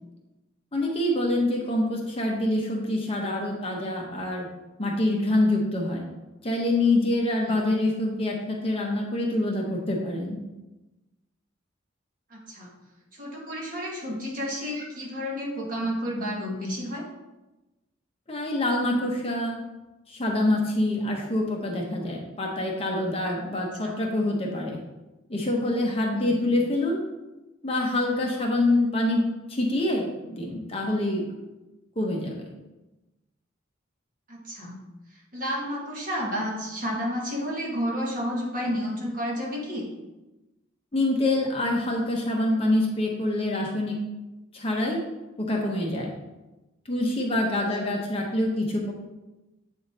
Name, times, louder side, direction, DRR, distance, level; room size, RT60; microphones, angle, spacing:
voice 1, 0.7-4.5 4.8-6.0 6.4-10.4 18.3-19.6 20.1-24.8 25.3-27.0 27.6-31.3 32.0-32.5 40.9-44.0 44.5-45.0 45.4-46.1 46.9-48.9, left 1 dB, 30° left, -1 dB, 0.9 m, -26 dB
voice 2, 12.3-12.7 13.1-17.0 23.8-24.0 26.1-26.4 34.3-34.8 35.3-39.9, equal, 40° right, -3 dB, 1.5 m, -31 dB
8.0 x 3.5 x 4.1 m, 1.0 s
head